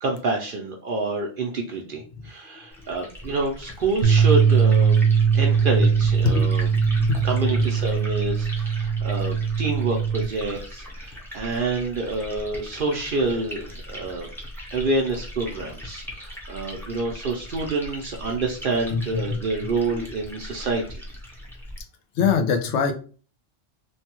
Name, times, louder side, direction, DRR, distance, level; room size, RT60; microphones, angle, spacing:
voice 1, 0.0-5.1 5.3-6.7 7.2-14.3 14.7-21.0, right 3 dB, 60° right, 1 dB, 0.7 m, -27 dB
Liquid, 2.7-21.8, equal, 5° left, 0.6 m, -39 dB
sound 1, 4.0-10.3, right 6 dB, 80° right, 0.9 m, -20 dB
voice 2, 6.2-7.2 7.5-7.7 15.5-15.6 18.9-19.4 19.9-20.1 22.1-22.9, left 5 dB, 85° left, 5 dB, 0.9 m, -24 dB
3.1 x 2.2 x 2.9 m, 0.38 s
omnidirectional pair, 1.1 m